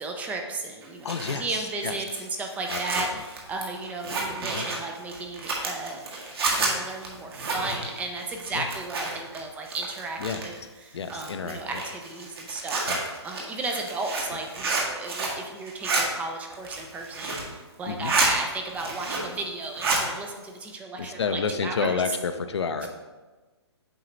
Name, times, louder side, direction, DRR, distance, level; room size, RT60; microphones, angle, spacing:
voice 1, 0.0-6.2 6.6-10.6 10.8-12.9 13.2-21.9 22.8-22.9, right 3 dB, 10° right, 3 dB, 0.4 m, -34 dB
Zipper (clothing), 0.8-9.4 9.6-10.6 11.1-15.4 15.7-16.0 16.5-17.5 17.8-18.3 18.7-19.4 19.6-20.0, right 3 dB, 60° right, 1.7 m, -30 dB
voice 2, 1.0-2.0 2.7-3.2 4.4-4.7 8.5-8.7 10.2-10.4 10.9-11.8 12.9-13.0 17.9-18.1 21.0-22.9, left 5 dB, 70° left, 8 dB, 0.6 m, -30 dB
7.7 x 4.7 x 3.1 m, 1.3 s
hypercardioid pair, 140°, 15 cm